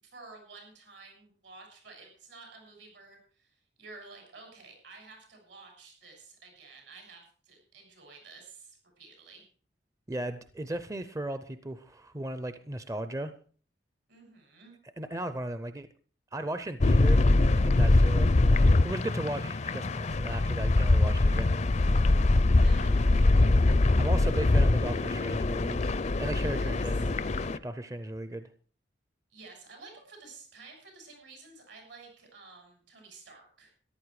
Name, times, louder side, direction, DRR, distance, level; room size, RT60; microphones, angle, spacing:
voice 1, 0.0-9.4 14.1-14.8 22.5-23.1 26.3-27.1 29.3-33.7, right 3 dB, 75° right, 3 dB, 6.8 m, -51 dB
voice 2, 10.1-13.3 15.0-15.9 16.3-18.3 18.6-21.6 24.0-27.2 27.6-28.5, right 1 dB, 20° right, 11 dB, 0.6 m, -36 dB
sound 1, 16.8-27.6, left 2 dB, 40° left, 0.5 m, -23 dB
14.0 x 11.0 x 4.8 m, 0.43 s
head